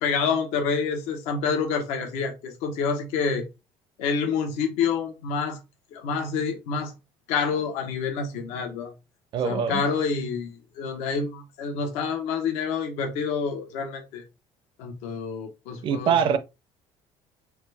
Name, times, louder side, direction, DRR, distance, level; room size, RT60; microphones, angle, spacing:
voice 1, 0.0-3.4 4.0-5.6 5.9-6.9 7.3-8.9 9.4-14.2 14.8-16.4, left 5 dB, 85° left, 1.0 m, -28 dB
voice 2, 9.3-9.8 15.8-16.4, right 7 dB, 50° right, 0.5 m, -23 dB
4.7 x 2.3 x 3.3 m
cardioid pair, 135°, 11 cm